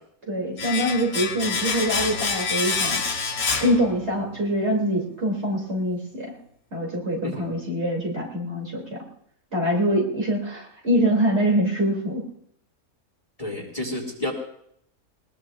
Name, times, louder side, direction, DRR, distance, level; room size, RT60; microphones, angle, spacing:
voice 1, 0.3-3.2 3.6-6.3 6.7-9.0 9.5-12.2, equal, 45° right, -1 dB, 3.2 m, -24 dB
Domestic sounds home sounds, 0.6-4.4 4.7-4.8, left 5 dB, 55° left, 1.5 m, -27 dB
voice 2, 13.4-14.3, left 1 dB, 25° left, 0 dB, 2.3 m, -30 dB
20.5 x 20.0 x 2.5 m, 0.69 s
omnidirectional pair, 1.6 m